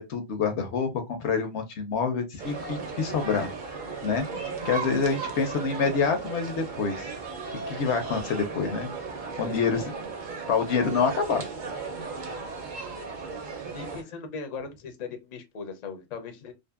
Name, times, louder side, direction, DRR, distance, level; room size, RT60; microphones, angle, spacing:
voice 1, 0.0-3.8 4.0-4.3 4.6-7.1 7.5-8.9 9.4-9.9 10.5-11.4, left 5 dB, 70° left, 0.9 m, -27 dB
sound 1, 2.4-14.0, right 4 dB, 50° right, 0.7 m, -36 dB
voice 2, 13.7-16.5, left 5 dB, 45° left, 0.6 m, -38 dB
2.6 x 2.5 x 2.4 m
omnidirectional pair, 1.2 m